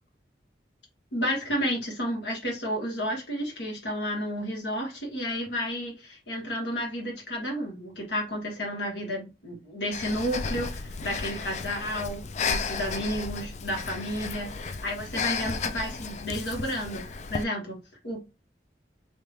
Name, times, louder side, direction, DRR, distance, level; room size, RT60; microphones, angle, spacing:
voice 1, 1.1-18.3, equal, 75° left, 1.6 m, -32 dB
Breathing, 9.9-17.4, left 5 dB, 40° left, 0.3 m, -33 dB
3.4 x 2.8 x 3.3 m
head